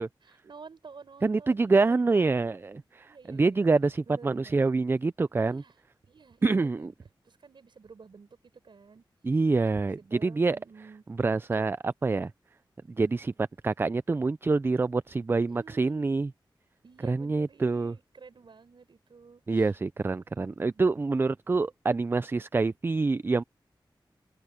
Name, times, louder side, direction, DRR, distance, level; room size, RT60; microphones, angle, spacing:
voice 1, 0.0-2.5 3.1-3.7 4.1-4.6 5.4-5.7 6.0-6.9 7.2-8.3 8.6-9.0 9.8-11.0 11.3-11.6 15.3-16.1 16.8-19.7 20.5-20.8, right 5 dB, 70° right, 7.1 m, -51 dB
voice 2, 1.2-5.6 6.4-6.9 9.2-10.6 11.2-12.3 12.9-16.3 17.0-17.9 19.5-23.4, right 3 dB, 25° right, 0.3 m, -26 dB
open air
wide cardioid pair, 110°, 8 cm